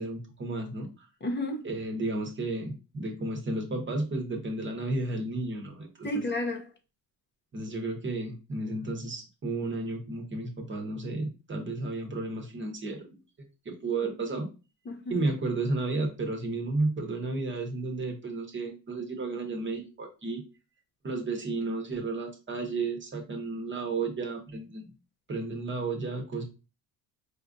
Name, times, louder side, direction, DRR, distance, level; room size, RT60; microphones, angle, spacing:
voice 1, 0.0-1.1 1.6-6.2 7.5-13.1 13.6-14.5 15.1-20.4 21.0-24.9 25.3-26.4, right 2 dB, 25° right, 0.9 m, -32 dB
voice 2, 1.2-1.7 6.0-6.7 14.9-15.2, left 1 dB, 25° left, 0.6 m, -32 dB
4.2 x 2.5 x 2.5 m
cardioid pair, 105°, 42 cm